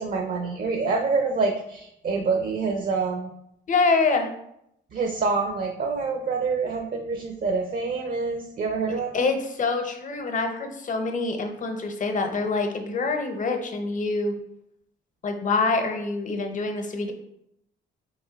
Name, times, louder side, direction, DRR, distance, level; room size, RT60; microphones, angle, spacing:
voice 1, 0.0-3.3 4.9-9.3, right 4 dB, 45° right, 3 dB, 0.5 m, -26 dB
voice 2, 3.7-4.3 9.1-14.3 15.2-17.1, left 3 dB, 40° left, 5 dB, 0.6 m, -25 dB
2.9 x 2.5 x 3.9 m, 0.78 s
cardioid pair, 90°, 20 cm